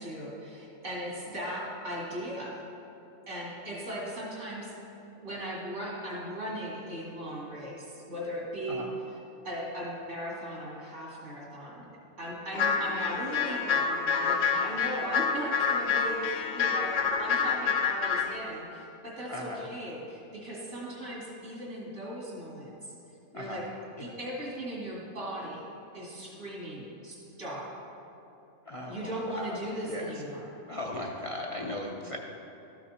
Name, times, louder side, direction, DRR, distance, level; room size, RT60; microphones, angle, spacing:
voice 1, 0.0-2.6 3.3-4.7 5.2-8.9 9.4-11.8 12.2-22.8 23.3-23.6 24.0-25.6 25.9-27.7 28.9-30.5, equal, 75° right, -5 dB, 2.6 m, -38 dB
sound 1, 12.5-18.4, left 6 dB, 80° left, 1.0 m, -28 dB
voice 2, 19.3-19.7 23.3-23.6 24.0-24.1 28.6-29.6 29.9-30.1 30.7-32.2, left 1 dB, 35° left, 0 dB, 0.5 m, -37 dB
13.0 x 5.8 x 4.2 m, 2.9 s
omnidirectional pair, 1.3 m